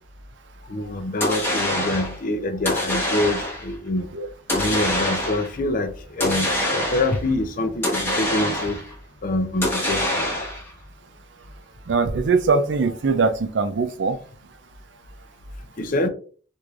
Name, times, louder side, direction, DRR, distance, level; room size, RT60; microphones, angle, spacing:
voice 1, 0.6-4.1 4.5-8.8 9.2-10.2 15.8-16.1, left 2 dB, 50° left, 0.5 m, -25 dB
sound 1, 1.2-2.2 2.7-3.7 4.5-5.5 6.2-7.3 7.8-8.9 9.6-10.7, left 1 dB, 15° left, 1.1 m, -25 dB
voice 2, 11.9-14.2, right 4 dB, 90° right, 0.5 m, -21 dB
4.6 x 2.6 x 2.4 m
head